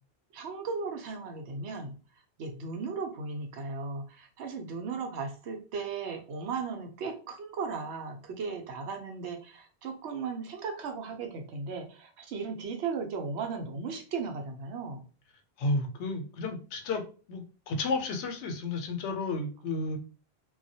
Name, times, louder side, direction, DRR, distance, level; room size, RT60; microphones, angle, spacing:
voice 1, 0.3-2.0 2.4-15.1, right 4 dB, 80° right, 3 dB, 0.9 m, -36 dB
voice 2, 15.6-17.0 17.3-20.0, left 3 dB, 90° left, 5 dB, 0.9 m, -32 dB
2.2 x 2.0 x 2.6 m, 0.36 s
omnidirectional pair, 1.1 m